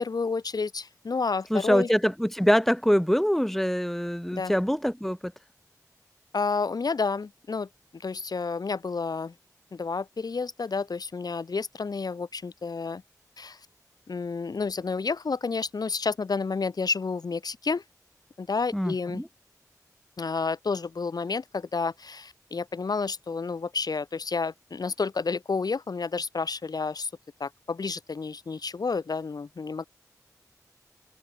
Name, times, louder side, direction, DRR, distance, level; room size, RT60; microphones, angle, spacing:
voice 1, 0.0-1.9 4.3-4.5 6.3-9.3 9.7-13.0 13.4-13.6 14.1-17.8 18.4-19.2 20.2-27.1 27.4-29.9, left 4 dB, 85° left, 1.4 m, -30 dB
voice 2, 1.5-5.2 18.7-19.3, equal, 5° left, 1.8 m, -24 dB
wide cardioid pair, 50°, 7 cm